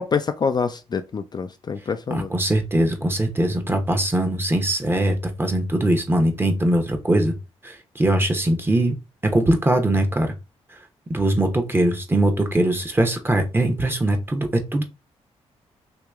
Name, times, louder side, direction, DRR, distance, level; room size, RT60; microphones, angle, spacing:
voice 1, 0.0-2.3, left 5 dB, 35° left, 0.4 m, -26 dB
voice 2, 2.1-7.3 7.6-9.0 9.2-10.3 11.1-14.8, right 1 dB, 20° right, 0.9 m, -21 dB
2.9 x 2.9 x 3.5 m
cardioid pair, 75°, 12 cm